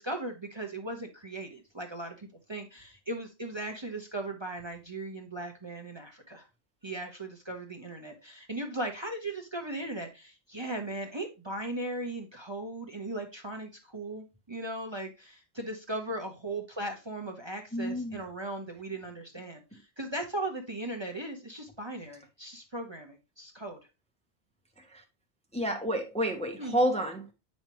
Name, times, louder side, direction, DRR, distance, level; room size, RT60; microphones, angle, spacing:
voice 1, 0.0-6.5 6.8-23.8 26.6-26.8, right 1 dB, 25° right, 1.0 m, -38 dB
voice 2, 17.7-18.2 24.8-25.0 25.5-27.3, equal, 5° left, 0.9 m, -30 dB
8.0 x 5.3 x 3.0 m
omnidirectional pair, 1.1 m